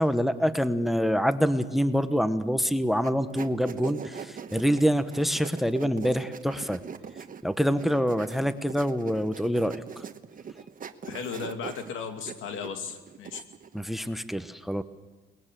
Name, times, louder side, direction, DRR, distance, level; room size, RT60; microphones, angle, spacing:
voice 1, 0.0-6.8 7.4-10.0 13.7-14.8, equal, ahead, 12 dB, 1.1 m, -26 dB
sound 1, 3.0-13.8, right 7 dB, 45° right, 1.3 m, -42 dB
voice 2, 11.0-13.4, left 6 dB, 85° left, 6 dB, 2.5 m, -35 dB
22.0 x 20.0 x 7.6 m, 1.3 s
cardioid pair, 90°, 20 cm